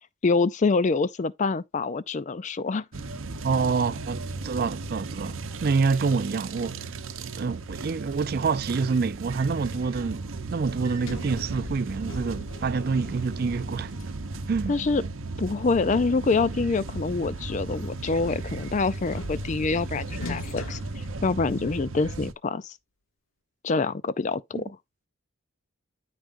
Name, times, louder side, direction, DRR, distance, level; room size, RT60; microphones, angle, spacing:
voice 1, 0.2-2.8 14.7-15.0 15.4-22.7 23.6-24.6, left 4 dB, 35° left, 0.4 m, -26 dB
sound 1, 2.9-22.3, right 3 dB, 70° right, 0.8 m, -36 dB
voice 2, 3.4-6.9 7.4-13.9 14.5-14.8 24.6-24.7, right 4 dB, 45° right, 0.4 m, -27 dB
Sliding door, 10.5-15.3 16.9-21.9, left 2 dB, 75° left, 1.1 m, -43 dB
12.5 x 4.7 x 2.5 m
head